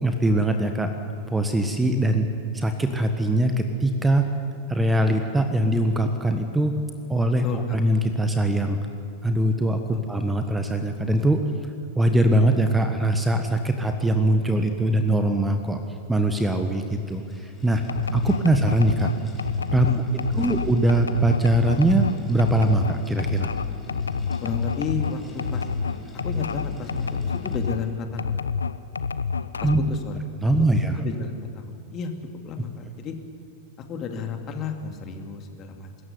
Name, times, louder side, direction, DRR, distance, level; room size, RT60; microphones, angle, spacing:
voice 1, 0.0-0.9 1.3-2.3 2.5-4.3 4.7-6.7 7.1-7.5 7.7-8.8 9.2-9.8 10.1-11.4 11.9-15.8 16.1-17.8 18.1-19.1 19.7-19.9 20.4-23.5 29.6-29.8 30.4-31.0, right 1 dB, 10° right, 7 dB, 1.4 m, -22 dB
voice 2, 7.4-7.8 9.9-10.1 18.2-18.3 19.7-20.5 24.4-25.7 26.2-28.4 29.6-30.5 31.0-32.1 32.4-33.1 33.9-36.0, left 5 dB, 30° left, 4 dB, 2.5 m, -33 dB
sound 1, 16.0-28.0, left 2 dB, 10° left, 4.2 m, -47 dB
sound 2, 17.9-27.8 28.2-30.0, left 5 dB, 75° left, 0.6 m, -28 dB
24.0 x 14.0 x 9.6 m, 2.6 s
figure-of-eight pair, 90°, 0 cm